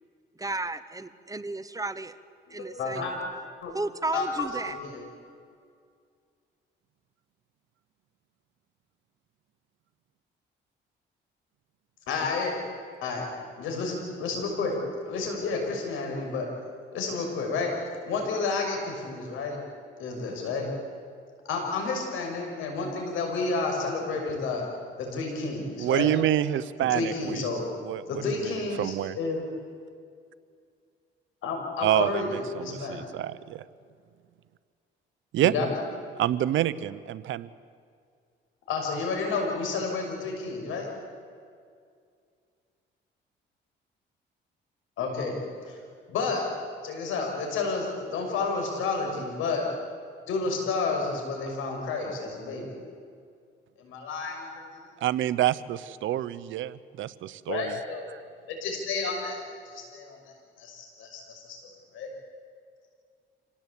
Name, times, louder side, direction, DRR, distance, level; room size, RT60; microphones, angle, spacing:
voice 1, 0.4-2.2 2.5-3.1 3.7-4.8, right 2 dB, 15° right, 13 dB, 1.0 m, -33 dB
voice 2, 2.5-3.3 3.6-3.7 4.1-4.3 4.6-5.0 12.1-12.5 13.0-13.3 13.6-14.8 15.1-16.5 16.9-17.7 18.0-19.6 20.0-20.7 21.5-24.6 25.0-26.1 26.9-27.6 28.1-29.4 31.4-33.0 35.4-35.8 38.7-40.9 45.0-45.4 45.7-45.8 46.1-46.4 46.8-49.7 50.3-52.7 53.8-54.6 57.5-58.0 58.5-60.2 60.6-61.6 61.9-62.1, left 4 dB, 90° left, 2 dB, 6.2 m, -30 dB
voice 3, 25.8-27.5 27.8-29.2 31.8-33.6 35.3-35.5 36.2-37.5 55.0-57.8 58.1-58.2, right 12 dB, 80° right, 16 dB, 0.9 m, -27 dB
26.5 x 18.0 x 8.5 m, 2.2 s
cardioid pair, 90°, 20 cm